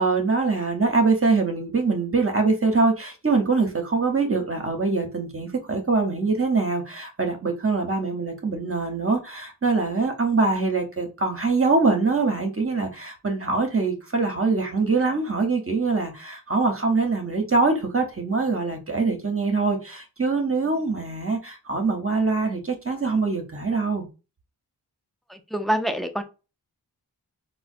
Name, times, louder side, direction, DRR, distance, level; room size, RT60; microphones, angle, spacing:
voice 1, 0.0-24.1, right 3 dB, 35° right, 0.8 m, -23 dB
voice 2, 25.3-26.2, equal, ahead, 0.5 m, -26 dB
3.7 x 2.1 x 2.5 m
cardioid pair, 45°, 39 cm